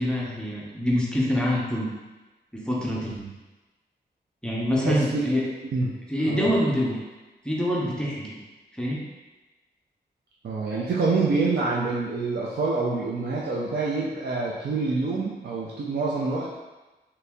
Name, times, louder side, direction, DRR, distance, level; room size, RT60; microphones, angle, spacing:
voice 1, 0.0-1.9 2.5-3.1 4.4-5.4 6.1-7.0 7.4-8.3 8.8-9.0, equal, 5° left, -5 dB, 0.5 m, -25 dB
voice 2, 4.8-5.2 5.7-5.9 6.2-6.5 10.4-16.5, right 3 dB, 70° right, -5 dB, 0.5 m, -26 dB
2.9 x 2.7 x 3.4 m, 1.1 s
wide cardioid pair, 180°, 18 cm